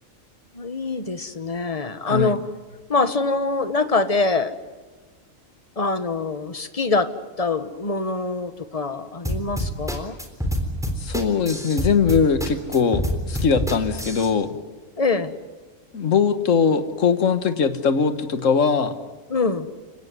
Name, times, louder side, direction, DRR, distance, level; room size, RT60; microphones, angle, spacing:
voice 1, 0.5-2.4 2.9-4.5 5.8-7.1 7.4-10.2 15.0-15.3 19.3-19.7, left 3 dB, 30° left, 10 dB, 1.3 m, -24 dB
sound 1, 9.2-14.3, equal, ahead, 3.7 m, -26 dB
voice 2, 11.0-14.6 15.9-18.9, left 6 dB, 70° left, 10 dB, 1.7 m, -21 dB
29.5 x 17.5 x 9.6 m, 1.4 s
omnidirectional pair, 1.4 m